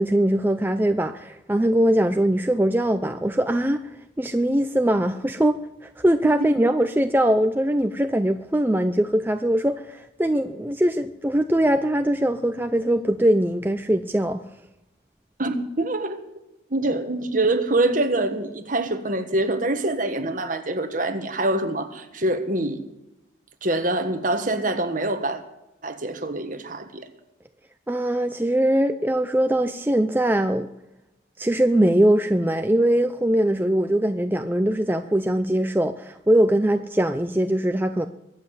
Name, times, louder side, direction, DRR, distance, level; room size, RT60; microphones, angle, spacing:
voice 1, 0.0-3.8 4.2-14.4 27.9-30.7 31.4-38.1, right 1 dB, 10° right, 7 dB, 0.5 m, -21 dB
voice 2, 15.4-16.2 16.7-22.8 23.6-25.4 25.8-27.1, right 2 dB, 40° right, 7 dB, 1.5 m, -25 dB
23.0 x 7.7 x 8.0 m, 0.92 s
head